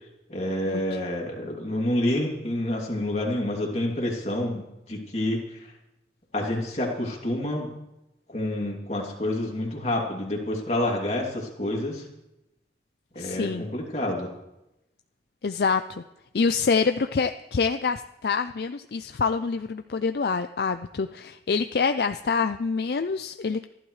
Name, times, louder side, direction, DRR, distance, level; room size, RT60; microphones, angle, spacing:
voice 1, 0.3-5.6 6.3-7.7 8.3-12.0 13.1-14.3, left 1 dB, 40° left, -1 dB, 2.7 m, -28 dB
voice 2, 13.2-13.7 15.4-16.0 16.3-23.7, left 5 dB, 65° left, 9 dB, 0.4 m, -26 dB
26.5 x 11.5 x 3.2 m, 0.91 s
head